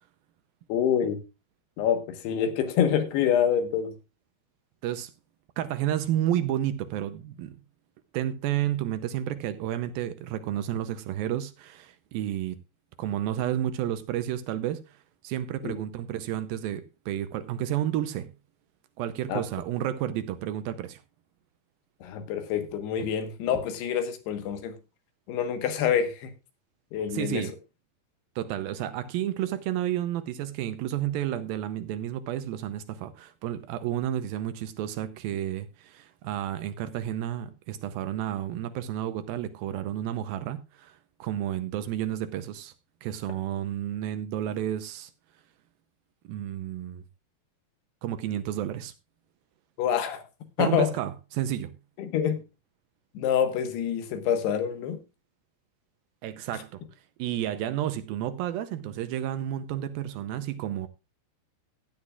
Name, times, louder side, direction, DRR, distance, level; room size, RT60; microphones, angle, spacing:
voice 1, 0.7-1.2 1.8-3.9 15.6-15.7 19.3-19.4 22.0-24.7 25.3-26.3 26.9-27.5 49.8-50.2 50.6-50.9 52.0-52.4 53.1-55.0, left 8 dB, 85° left, 3.4 m, -26 dB
voice 2, 5.6-7.6 8.1-12.6 13.0-15.0 15.2-18.3 19.0-21.0 27.1-27.5 28.4-42.7 43.0-45.1 46.3-47.0 48.0-48.9 50.6-51.7 56.2-56.8 57.2-60.9, right 11 dB, 80° right, 2.3 m, -31 dB
16.0 x 10.5 x 2.4 m
omnidirectional pair, 4.6 m